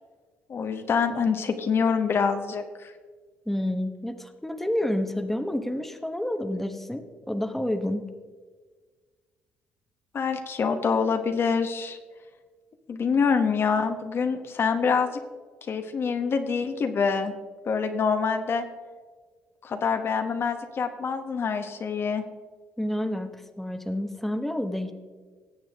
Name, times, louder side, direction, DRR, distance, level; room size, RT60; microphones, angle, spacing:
voice 1, 0.5-2.9 10.1-12.0 12.9-15.2 15.7-17.3 17.6-18.6 19.6-22.2, left 5 dB, 50° left, 7 dB, 1.1 m, -25 dB
voice 2, 3.5-8.1 22.8-24.9, left 1 dB, 5° left, 6 dB, 1.1 m, -29 dB
18.0 x 7.5 x 3.5 m, 1.5 s
supercardioid pair, 75°, 5 cm